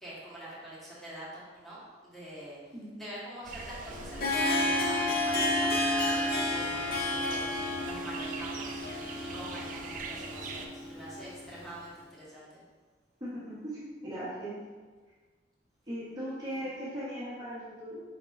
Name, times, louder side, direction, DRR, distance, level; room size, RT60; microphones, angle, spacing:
voice 1, 0.0-2.6 3.0-6.2 6.5-8.8 9.3-12.6 16.5-16.6, right 1 dB, ahead, -9 dB, 1.2 m, -45 dB
voice 2, 2.7-3.1 13.2-14.6 15.9-18.0, equal, 20° right, -9 dB, 1.0 m, -38 dB
sound 1, 3.4-10.7, right 4 dB, 45° right, 0.3 m, -43 dB
Harp, 3.9-11.7, left 1 dB, 55° left, 0.5 m, -31 dB
5.0 x 3.4 x 2.5 m, 1.4 s
head